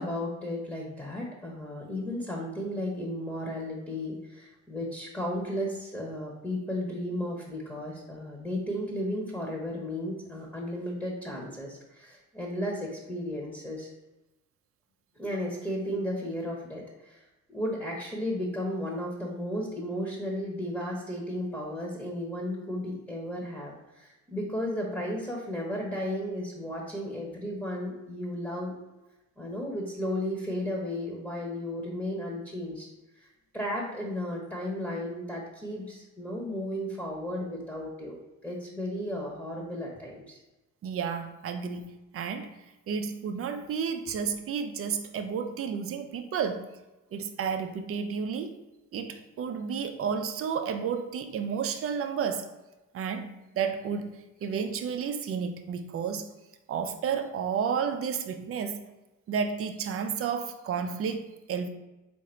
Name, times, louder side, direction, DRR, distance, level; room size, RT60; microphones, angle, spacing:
voice 1, 0.0-13.9 15.2-17.2 17.5-28.7 29.4-32.9 33.2-33.3 33.5-40.4, left 1 dB, 5° left, -2 dB, 1.0 m, -34 dB
voice 2, 40.8-41.9 42.1-42.5 42.9-46.8 47.1-48.5 48.9-52.5 52.9-56.3 56.7-58.8 59.3-61.7, right 6 dB, 50° right, 7 dB, 0.5 m, -31 dB
3.7 x 2.6 x 4.3 m, 1.0 s
cardioid pair, 90°, 30 cm